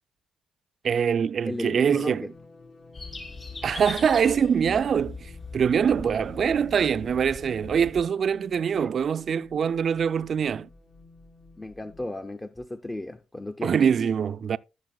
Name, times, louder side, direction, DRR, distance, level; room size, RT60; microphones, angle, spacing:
voice 1, 0.8-2.3 3.6-10.7 13.6-14.6, right 7 dB, 50° right, 0.3 m, -24 dB
voice 2, 1.4-2.3 8.8-8.9 11.6-13.8, left 1 dB, 15° left, 0.5 m, -35 dB
sound 1, 1.9-12.1, left 3 dB, 70° left, 2.3 m, -51 dB
sound 2, 2.9-8.0, left 3 dB, 35° left, 2.3 m, -40 dB
15.0 x 6.6 x 2.3 m
cardioid pair, 90°, 0 cm